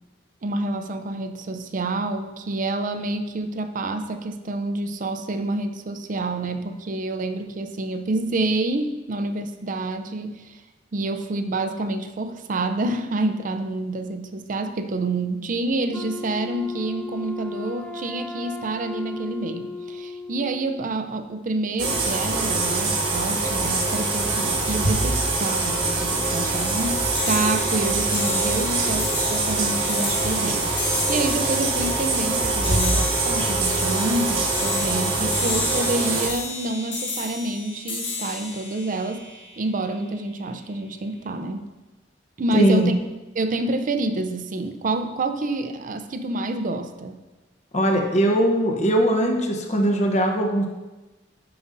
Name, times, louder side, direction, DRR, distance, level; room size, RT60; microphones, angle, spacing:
voice 1, 0.4-10.6 10.9-39.2 39.6-41.7 42.4-43.0 43.3-47.2, right 2 dB, 45° right, 9 dB, 0.5 m, -28 dB
Wind instrument woodwind instrument, 15.9-20.9, left 3 dB, 10° left, 0.4 m, -35 dB
sound 1, 21.8-36.3, right 3 dB, 80° right, 1.4 m, -24 dB
sound 2, 26.6-40.0, left 4 dB, 80° left, 1.5 m, -33 dB
voice 2, 42.5-42.9 47.7-50.7, right 1 dB, 40° left, 2 dB, 0.8 m, -20 dB
10.5 x 5.0 x 2.6 m, 1.1 s
head